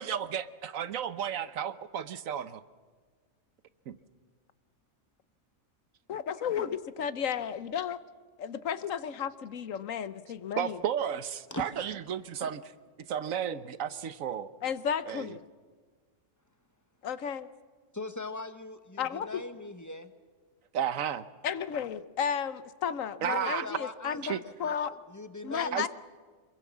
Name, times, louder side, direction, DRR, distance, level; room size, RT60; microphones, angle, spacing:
voice 1, 0.0-2.6 3.9-4.0 10.6-12.6 13.1-14.5 15.1-15.2 20.7-21.2 23.2-23.7 24.2-24.4 25.7-25.9, right 8 dB, 85° right, 14 dB, 1.3 m, -33 dB
voice 2, 6.1-8.0 8.4-10.8 14.6-15.4 17.0-17.5 19.0-19.4 21.4-24.9 25.4-25.9, left 8 dB, 80° left, 13 dB, 1.3 m, -33 dB
voice 3, 17.9-20.1 23.3-24.8 25.1-25.9, left 1 dB, 15° left, 9 dB, 1.1 m, -40 dB
26.5 x 22.5 x 7.4 m, 1.5 s
omnidirectional pair, 1.4 m